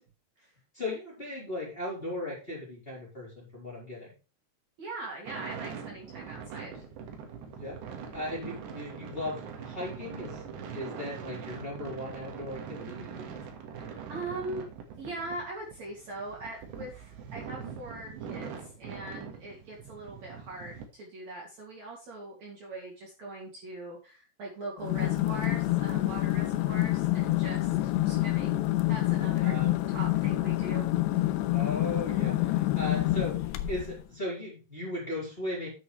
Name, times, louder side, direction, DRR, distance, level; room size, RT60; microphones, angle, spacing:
voice 1, 0.7-4.1 7.5-10.4 10.7-13.3 29.4-29.8 31.5-35.7, left 1 dB, 15° left, -4 dB, 3.7 m, -37 dB
voice 2, 4.8-6.8 8.4-8.6 13.7-14.6 15.0-28.6 28.9-29.6 29.9-31.4 32.9-33.0, right 2 dB, 45° right, -3 dB, 3.4 m, -41 dB
sound 1, 5.3-20.9, right 6 dB, 80° right, 3.9 m, -42 dB
sound 2, 24.8-34.0, left 17 dB, 90° left, 2.9 m, -27 dB
10.5 x 8.4 x 3.3 m, 0.32 s
omnidirectional pair, 5.0 m